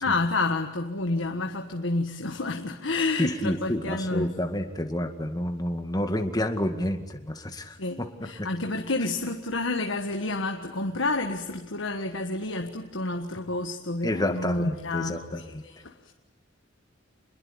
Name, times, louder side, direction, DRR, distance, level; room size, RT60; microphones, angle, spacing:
voice 1, 0.0-4.3 7.8-16.1, left 2 dB, 85° left, 1.5 m, -29 dB
voice 2, 3.2-8.1 8.4-8.5 14.0-15.6, left 1 dB, 20° left, 2.0 m, -29 dB
27.5 x 21.5 x 8.7 m
head